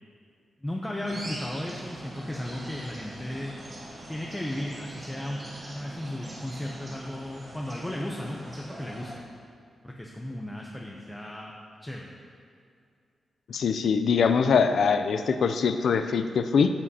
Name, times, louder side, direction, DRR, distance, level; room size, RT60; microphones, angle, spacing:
voice 1, 0.6-3.5 4.1-9.2 9.8-11.5 11.8-12.1, left 1 dB, 10° left, -1 dB, 0.6 m, -35 dB
sound 1, 1.1-9.2, right 1 dB, 30° right, 1.6 m, -42 dB
voice 2, 13.5-16.7, left 6 dB, 65° left, 9 dB, 0.4 m, -23 dB
13.5 x 7.5 x 2.8 m, 2.3 s
wide cardioid pair, 160°, 0 cm